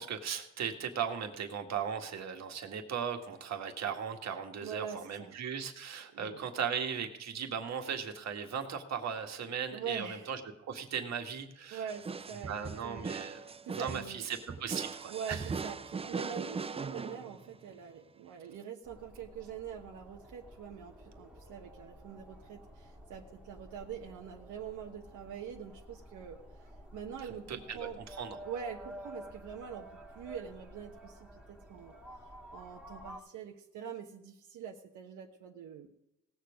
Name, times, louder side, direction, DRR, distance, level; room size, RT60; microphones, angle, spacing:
voice 1, 0.0-11.8 12.5-13.4 13.7-15.4 27.5-28.4, right 7 dB, 60° right, 5 dB, 1.9 m, -37 dB
voice 2, 4.6-5.4 6.1-6.4 9.7-10.3 11.7-13.1 13.4-14.3 15.1-28.0 28.4-32.0 32.5-35.9, right 7 dB, 85° right, 0 dB, 1.3 m, -44 dB
sound 1, 11.9-17.7, right 5 dB, 20° right, 0.5 m, -40 dB
sound 2, 18.8-33.2, equal, 5° right, 1.8 m, -51 dB
18.0 x 7.3 x 5.1 m, 0.88 s
cardioid pair, 90°, 30 cm